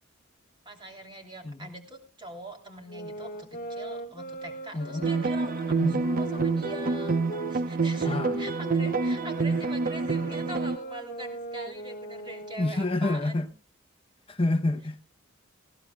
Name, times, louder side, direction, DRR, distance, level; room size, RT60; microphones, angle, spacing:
voice 1, 0.6-7.1 7.5-13.5, right 2 dB, 25° right, 3.1 m, -43 dB
sound 1, 2.9-7.6 8.0-13.0, equal, 45° left, 1.5 m, -40 dB
voice 2, 4.7-5.1 5.8-6.0 8.0-8.4 12.6-13.5 14.3-15.0, left 2 dB, 25° left, 0.7 m, -28 dB
sound 2, 5.0-10.8, right 4 dB, 45° right, 0.6 m, -27 dB
19.5 x 16.0 x 2.3 m
head